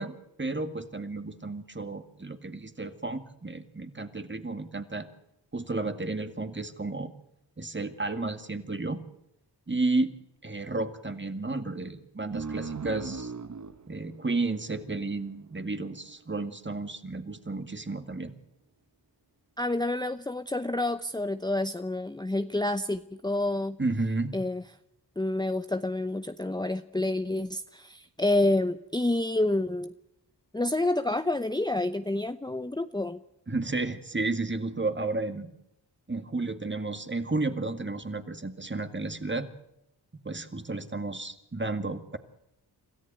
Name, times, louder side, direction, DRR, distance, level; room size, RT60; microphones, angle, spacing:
voice 1, 0.0-5.1 5.5-7.1 7.6-9.0 9.7-10.1 10.4-13.3 13.9-18.3 23.8-24.4 33.5-35.5 36.1-39.5 40.2-42.2, right 3 dB, 25° right, 8 dB, 2.1 m, -32 dB
sound 1, 12.3-15.5, right 4 dB, 40° right, 1.2 m, -38 dB
voice 2, 19.6-23.8 24.3-24.6 25.2-29.9 30.5-33.2, left 2 dB, 10° left, 9 dB, 0.8 m, -28 dB
26.5 x 14.0 x 9.1 m, 0.83 s
cardioid pair, 45°, 42 cm